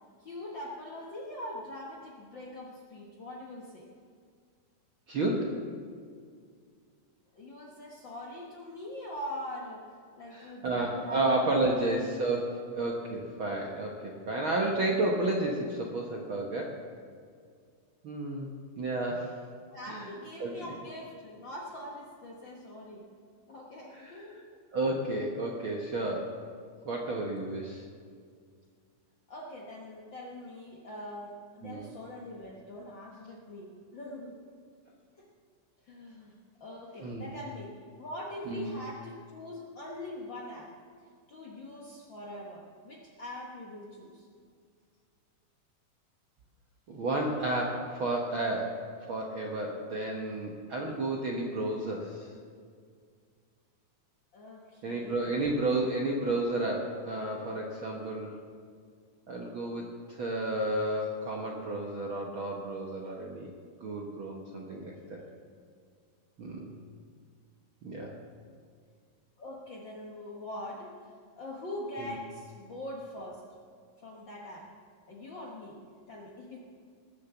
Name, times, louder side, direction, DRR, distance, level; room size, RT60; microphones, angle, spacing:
voice 1, 0.2-3.9 7.3-9.8 10.2-11.4 11.8-12.0 12.3-12.4 19.7-23.0 23.5-24.4 29.3-34.4 35.2-35.3 35.9-36.3 36.6-40.7 41.3-44.3 54.3-55.8 64.7-65.4 69.4-73.4 74.0-74.7 75.1-75.8 76.1-76.6, left 1 dB, 55° left, -3 dB, 1.4 m, -43 dB
voice 2, 5.1-5.5 10.3-16.7 18.0-19.3 19.9-20.1 20.4-20.6 23.9-24.2 24.7-26.3 26.8-27.9 31.6-31.9 37.0-37.3 38.5-38.7 46.9-52.3 54.8-58.3 59.3-63.5 63.8-65.2 66.4-66.7 67.8-68.1, right 2 dB, 60° right, -1 dB, 1.4 m, -32 dB
19.5 x 6.9 x 7.0 m, 2.1 s
omnidirectional pair, 3.8 m